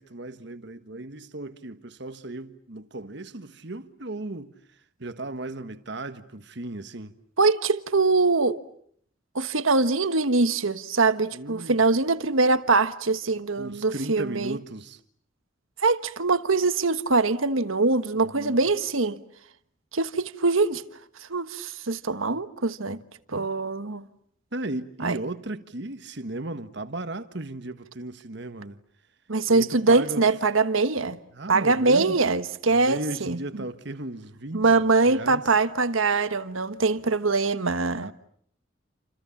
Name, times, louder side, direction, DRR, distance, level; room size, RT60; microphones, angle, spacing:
voice 1, 0.0-4.5 5.0-7.1 11.3-11.8 13.6-15.0 18.1-18.7 23.3-23.5 24.5-28.8 29.5-30.2 31.3-32.1 32.7-34.8 35.1-35.4 38.0-38.1, right 2 dB, 55° right, 1.5 m, -36 dB
voice 2, 7.4-8.6 9.3-14.6 15.8-19.2 19.9-20.8 21.3-23.0 23.3-24.1 25.0-25.2 29.3-31.2 31.5-33.6 34.5-38.1, right 3 dB, 80° right, 1.4 m, -23 dB
29.0 x 27.5 x 7.2 m
head